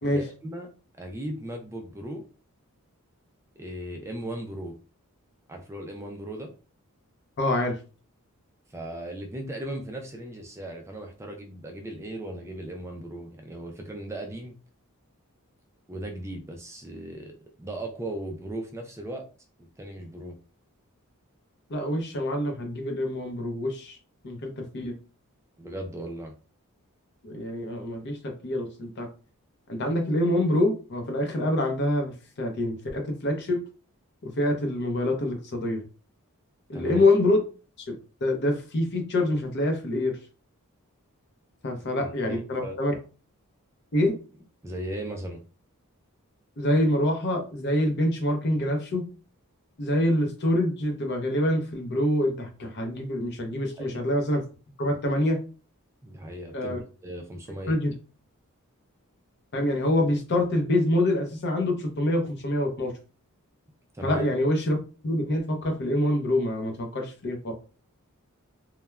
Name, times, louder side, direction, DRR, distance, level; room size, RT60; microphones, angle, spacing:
voice 1, 0.1-0.7 1.0-2.2 3.6-4.8 5.5-6.5 8.7-14.6 15.9-17.3 17.6-19.2 19.6-20.3 25.6-26.3 36.7-37.0 41.8-42.8 44.6-45.4 53.8-54.0 56.0-57.7 63.9-64.2, right 1 dB, 10° right, 3 dB, 0.3 m, -37 dB
voice 2, 7.4-7.8 21.7-24.0 24.2-24.9 27.2-29.1 29.7-33.6 34.2-35.8 36.7-37.4 37.9-40.2 41.6-43.0 43.9-44.1 46.6-49.1 49.8-54.4 54.8-55.4 56.5-56.8 57.7-57.9 59.5-62.9 64.0-64.8 65.0-67.5, left 1 dB, 50° left, 4 dB, 0.6 m, -26 dB
3.1 x 2.1 x 2.3 m, 0.35 s
head